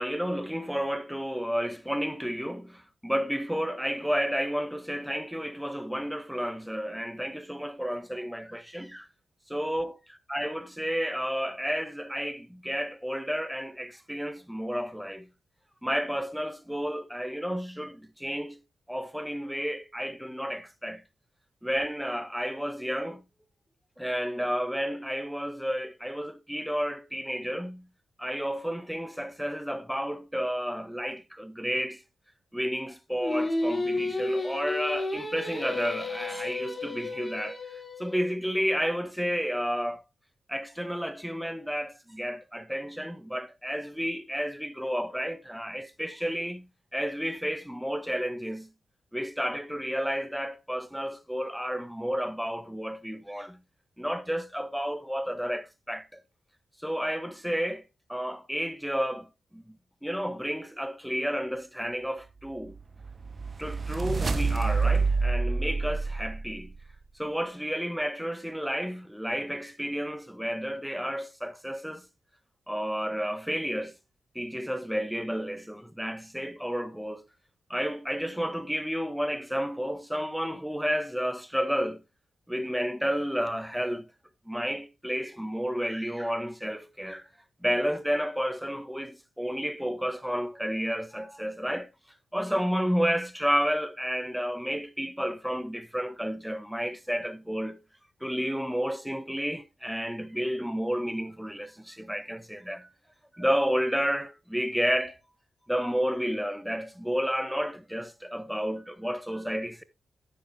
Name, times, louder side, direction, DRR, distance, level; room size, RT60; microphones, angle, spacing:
voice 1, 0.0-9.1 9.5-10.0 10.3-15.3 15.8-18.6 18.9-21.0 21.6-23.2 24.0-27.8 28.2-32.0 32.5-37.6 38.0-40.0 40.5-46.7 46.9-48.7 49.1-53.6 54.0-56.0 56.8-57.8 58.1-59.8 60.0-62.8 63.6-66.7 67.2-72.0 72.7-73.9 74.3-77.2 77.7-82.0 82.5-84.1 84.5-87.2 87.6-91.9 92.3-97.8 98.2-102.9 103.3-105.2 105.7-109.8, equal, ahead, 1.6 m, -31 dB
Singing, 33.2-38.3, left 2 dB, 35° left, 3.0 m, -32 dB
sound 1, 62.7-67.0, right 4 dB, 50° right, 1.6 m, -28 dB
10.5 x 10.0 x 2.2 m
supercardioid pair, 45°, 0 cm